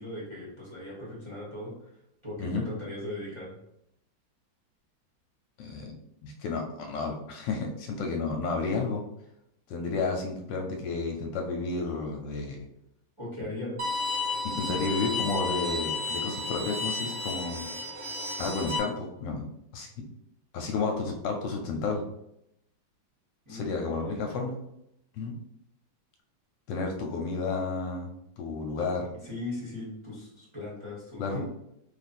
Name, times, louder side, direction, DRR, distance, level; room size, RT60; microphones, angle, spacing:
voice 1, 0.0-1.9 2.2-3.6 13.2-14.0 23.4-24.4 29.2-31.5, left 1 dB, 20° right, -6 dB, 0.9 m, -39 dB
voice 2, 5.6-9.0 9.7-12.7 14.4-17.7 18.4-19.4 19.7-19.9 20.5-22.0 23.5-24.6 25.2-25.3 26.7-28.1 28.4-29.1 31.2-31.4, left 3 dB, 75° left, 2 dB, 1.2 m, -31 dB
Bowed string instrument, 13.8-18.8, left 3 dB, 50° right, 1.1 m, -32 dB
3.2 x 2.4 x 4.2 m, 0.79 s
omnidirectional pair, 2.1 m